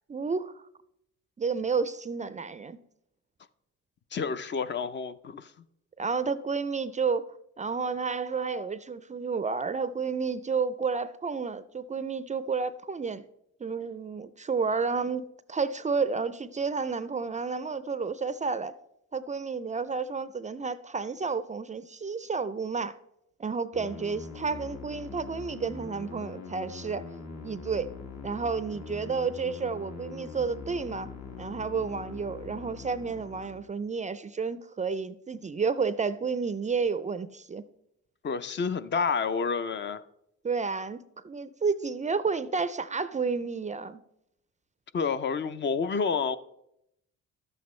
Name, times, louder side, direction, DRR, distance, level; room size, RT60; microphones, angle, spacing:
voice 1, 0.1-0.6 1.4-2.8 6.0-13.2 13.6-18.7 19.1-22.9 23.4-27.0 27.4-27.9 28.2-31.1 31.4-37.6 40.4-44.0, right 5 dB, 25° right, 0.4 m, -31 dB
voice 2, 4.1-5.5 38.2-40.0 44.9-46.4, left 5 dB, 40° left, 0.5 m, -29 dB
sound 1, 23.7-33.7, left 4 dB, 60° left, 1.5 m, -43 dB
11.5 x 7.9 x 3.1 m
cardioid pair, 90°, 30 cm